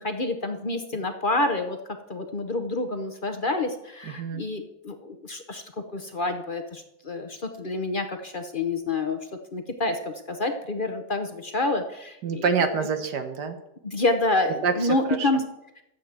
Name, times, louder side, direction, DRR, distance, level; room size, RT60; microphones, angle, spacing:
voice 1, 0.0-1.8 2.1-5.6 5.9-9.2 9.5-12.4 13.8-15.4, left 2 dB, 45° left, 6 dB, 0.7 m, -28 dB
voice 2, 4.0-4.4 12.2-13.6 14.6-14.7 15.1-15.3, right 5 dB, 60° right, 7 dB, 1.7 m, -26 dB
12.0 x 8.0 x 7.5 m, 0.86 s
omnidirectional pair, 2.1 m